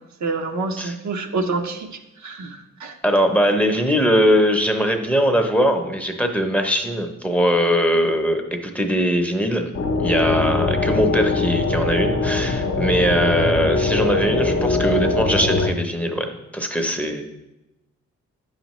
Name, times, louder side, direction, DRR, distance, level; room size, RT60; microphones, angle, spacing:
voice 1, 0.2-1.9 2.2-2.9, right 3 dB, 70° right, 5 dB, 0.7 m, -27 dB
voice 2, 3.0-9.6 10.0-17.2, equal, 5° left, 5 dB, 0.7 m, -21 dB
sound 1, 9.7-15.7, left 3 dB, 45° left, 0.6 m, -21 dB
8.8 x 6.4 x 3.0 m, 0.95 s
cardioid pair, 100°, 30 cm